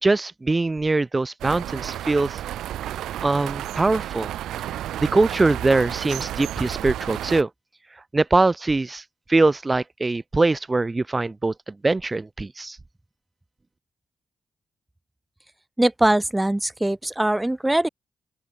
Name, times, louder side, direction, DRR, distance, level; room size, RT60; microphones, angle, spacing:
voice 1, 0.0-2.4 3.2-4.3 5.0-7.5 8.1-9.0 9.3-12.8, right 3 dB, 30° right, 1.3 m, -22 dB
sound 1, 1.4-7.4, right 12 dB, 85° right, 1.7 m, -32 dB
voice 2, 15.8-17.9, right 1 dB, 15° right, 1.6 m, -21 dB
open air
supercardioid pair, 50°, 0 cm